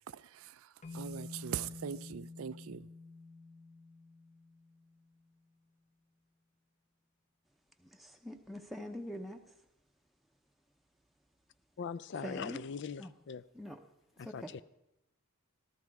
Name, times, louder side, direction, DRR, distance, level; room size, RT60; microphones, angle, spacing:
voice 1, 0.1-2.9, right 8 dB, 80° right, 0.4 m, -42 dB
sound 1, 0.8-5.1, left 3 dB, 35° left, 0.9 m, -49 dB
voice 2, 7.8-9.5 12.2-12.6 13.0-13.1 13.5-13.8 14.2-14.5, equal, ahead, 0.7 m, -44 dB
voice 3, 11.8-13.4 14.2-14.6, left 6 dB, 55° left, 0.4 m, -41 dB
14.0 x 13.5 x 4.7 m
head